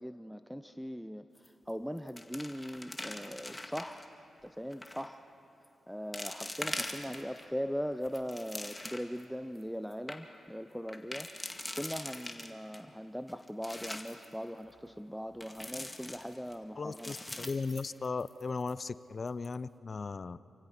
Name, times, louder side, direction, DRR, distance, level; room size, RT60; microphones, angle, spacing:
voice 1, 0.0-5.3 5.9-17.4, equal, ahead, 9 dB, 0.6 m, -40 dB
sound 1, 1.4-1.7 2.0-4.0 4.7-5.1 5.6-5.7 6.1-7.4 7.9-9.2 9.6-9.7 9.9-10.2 10.9-12.8 13.3-14.3 15.4-16.5 16.9-18.4 18.7-18.8 19.3-19.5, left 1 dB, 15° left, 1.9 m, -42 dB
voice 2, 16.8-20.4, left 4 dB, 50° left, 17 dB, 0.5 m, -37 dB
28.0 x 16.0 x 5.9 m, 2.8 s
supercardioid pair, 45°, 0 cm